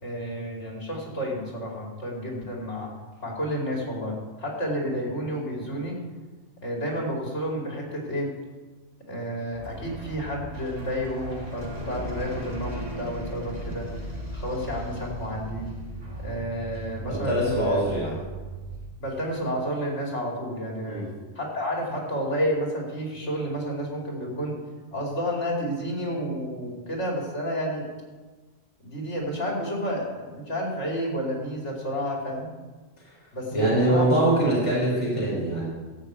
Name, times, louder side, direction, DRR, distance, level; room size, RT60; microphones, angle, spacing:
voice 1, 0.0-2.9 3.2-6.0 6.6-8.3 9.1-13.9 14.3-15.7 16.2-17.8 19.0-21.0 21.3-24.5 24.9-27.8 28.8-32.5 33.3-35.0, equal, 75° left, -2 dB, 3.3 m, -30 dB
sound 1, 9.5-18.9, right 1 dB, 35° right, 2.2 m, -37 dB
voice 2, 17.1-18.1 20.8-21.1 33.5-35.7, right 1 dB, 25° left, -7 dB, 4.4 m, -23 dB
13.0 x 5.8 x 8.1 m, 1.3 s
omnidirectional pair, 1.2 m